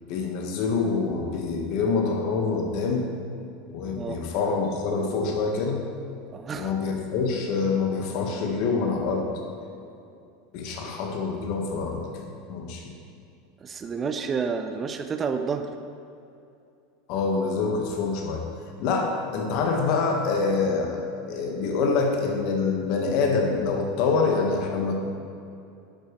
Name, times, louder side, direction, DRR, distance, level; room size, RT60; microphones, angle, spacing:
voice 1, 0.1-3.0 3.7-5.8 6.5-9.3 10.5-12.9 17.1-18.4 18.8-25.0, left 4 dB, 55° left, 1 dB, 1.5 m, -26 dB
voice 2, 6.3-6.7 13.6-15.7, right 5 dB, 30° right, 7 dB, 0.6 m, -29 dB
10.5 x 8.1 x 3.3 m, 2.6 s
hypercardioid pair, 85°, 0 cm